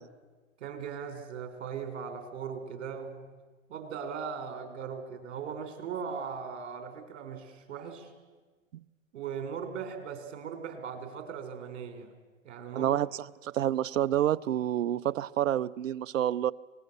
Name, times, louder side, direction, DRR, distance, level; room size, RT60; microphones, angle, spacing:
voice 1, 0.6-3.3 3.7-8.1 9.1-12.1 12.4-12.9, right 6 dB, 55° right, 7 dB, 4.5 m, -39 dB
voice 2, 12.7-16.5, right 11 dB, 70° right, 14 dB, 0.8 m, -28 dB
25.5 x 20.0 x 6.8 m, 1.3 s
hypercardioid pair, 145°, 41 cm